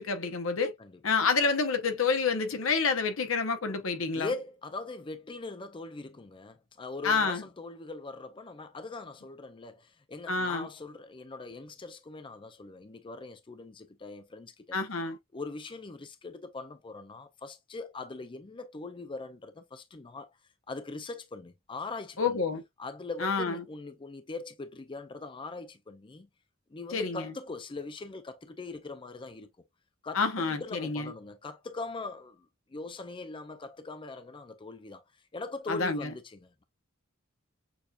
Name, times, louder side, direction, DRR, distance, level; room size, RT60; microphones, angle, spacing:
voice 1, 0.0-0.7 1.0-4.3 7.0-7.4 10.3-10.7 14.7-15.2 22.2-22.6 23.2-23.6 26.9-27.2 30.1-31.1 35.7-36.1, left 4 dB, 80° left, 0.9 m, -28 dB
voice 2, 0.8-1.1 4.1-14.8 15.3-20.3 20.7-22.4 22.8-26.3 26.7-29.5 30.0-36.6, left 3 dB, 25° left, 0.5 m, -41 dB
6.8 x 2.7 x 2.4 m
head